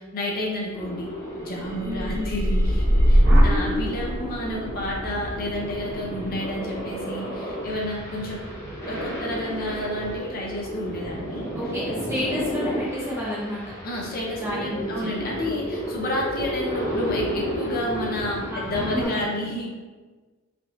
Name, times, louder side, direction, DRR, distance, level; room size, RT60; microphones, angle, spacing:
voice 1, 0.1-1.1 1.4-8.4 8.9-11.5 13.8-19.7, left 1 dB, 45° left, -3 dB, 0.6 m, -30 dB
sound 1, 0.7-19.1, equal, 15° left, 1.3 m, -33 dB
sound 2, 1.7-9.7 10.1-10.6, equal, 55° right, 0.6 m, -24 dB
voice 2, 1.8-2.2 3.2-3.7 11.5-13.6 14.4-15.1 18.5-18.6 18.9-19.3, left 1 dB, 10° right, -7 dB, 0.5 m, -30 dB
3.3 x 2.6 x 2.5 m, 1.3 s
head